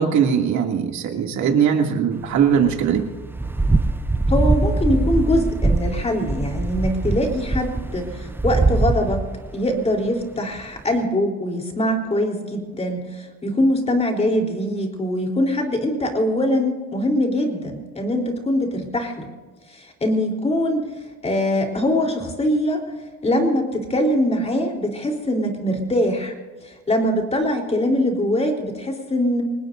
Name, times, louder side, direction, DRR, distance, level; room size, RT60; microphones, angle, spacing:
voice 1, 0.0-3.1, right 7 dB, 65° right, 2 dB, 2.6 m, -20 dB
sound 1, 2.4-9.7 10.1-10.2 10.6-10.7, right 2 dB, 5° right, 0.5 m, -22 dB
voice 2, 4.3-9.2 9.5-19.3 19.7-20.9 21.2-22.8 23.2-26.3 26.7-29.4, left 1 dB, 20° left, 2 dB, 3.8 m, -22 dB
25.5 x 20.0 x 2.7 m, 1.4 s
cardioid pair, 130°, 31 cm